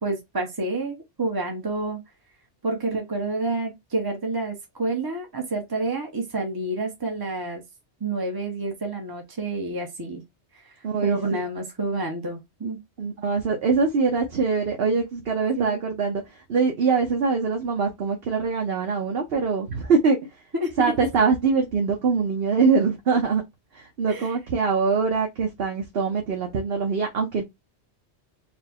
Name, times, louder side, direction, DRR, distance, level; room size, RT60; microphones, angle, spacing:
voice 1, 0.0-2.0 2.6-7.6 8.0-10.2 10.5-10.7 11.0-12.8 15.6-15.8 20.5-20.7 24.1-24.3, right 2 dB, 20° right, 0.7 m, -29 dB
voice 2, 10.8-11.4 13.0-20.2 20.8-23.4 23.7-27.4, right 5 dB, 60° right, 1.1 m, -23 dB
4.5 x 2.1 x 4.2 m
omnidirectional pair, 1.2 m